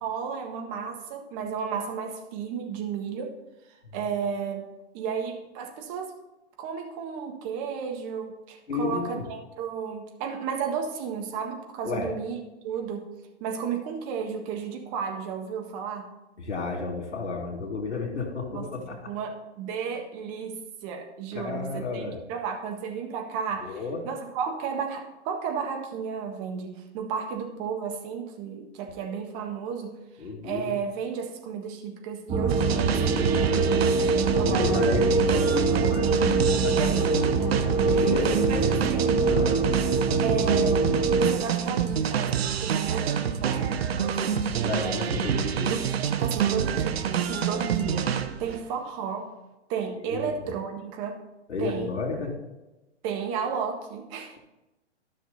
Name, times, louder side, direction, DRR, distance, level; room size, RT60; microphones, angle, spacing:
voice 1, 0.0-3.3 3.9-4.7 4.9-6.1 6.6-12.4 12.6-13.1 13.4-16.1 18.5-18.7 19.1-22.0 22.3-23.8 24.0-33.8 34.2-34.9 36.8-37.0 37.4-37.6 37.8-39.3 40.2-44.4 44.8-45.2 45.7-49.3 49.7-51.2 51.6-51.9 53.0-54.4, right 6 dB, 30° right, 3 dB, 1.6 m, -33 dB
voice 2, 8.7-9.2 11.8-12.1 16.4-19.1 21.3-22.2 23.6-24.0 30.2-30.8 33.3-33.7 34.3-36.9 37.8-38.3 39.3-39.6 44.6-45.7 50.0-50.3 51.5-52.3, left 4 dB, 75° left, 2 dB, 2.7 m, -32 dB
sound 1, 32.3-41.3, right 3 dB, 15° right, 0.9 m, -24 dB
sound 2, 32.5-48.6, right 8 dB, 60° right, 0.9 m, -28 dB
13.0 x 6.2 x 4.1 m, 1.0 s
figure-of-eight pair, 125°, 35 cm